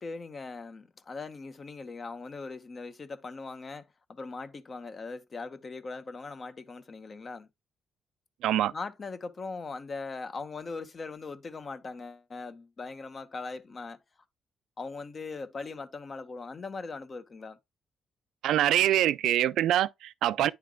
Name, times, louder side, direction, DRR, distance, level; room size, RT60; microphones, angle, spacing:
voice 1, 0.0-7.5 8.7-14.0 14.8-17.6, left 4 dB, 40° left, 0.9 m, -40 dB
voice 2, 8.4-8.7 18.4-20.5, right 12 dB, 85° right, 0.3 m, -24 dB
9.4 x 3.4 x 3.6 m
cardioid pair, 80°, 0 cm